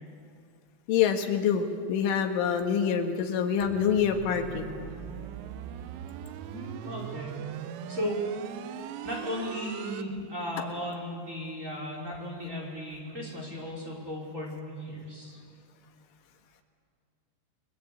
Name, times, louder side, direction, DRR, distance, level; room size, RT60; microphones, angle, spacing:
voice 1, 0.9-4.7, left 7 dB, 85° left, 5 dB, 4.2 m, -26 dB
sound 1, 3.6-10.0, right 9 dB, 90° right, 3.5 m, -40 dB
voice 2, 6.4-7.3 7.9-8.2 9.0-15.4, equal, 15° right, -2 dB, 5.2 m, -36 dB
29.5 x 21.5 x 8.5 m, 2.3 s
omnidirectional pair, 5.4 m